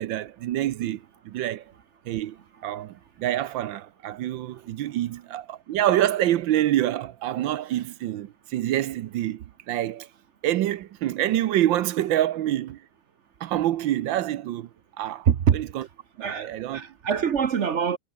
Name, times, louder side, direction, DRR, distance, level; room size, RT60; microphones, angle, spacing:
voice 1, 0.0-1.6 2.0-10.1 10.4-12.8 13.4-14.7 15.0-15.3 15.5-15.9 16.2-16.9, right 13 dB, 70° right, 1.4 m, -26 dB
voice 2, 15.3-15.6 16.2-18.0, right 8 dB, 55° right, 0.8 m, -24 dB
omnidirectional pair, 2.2 m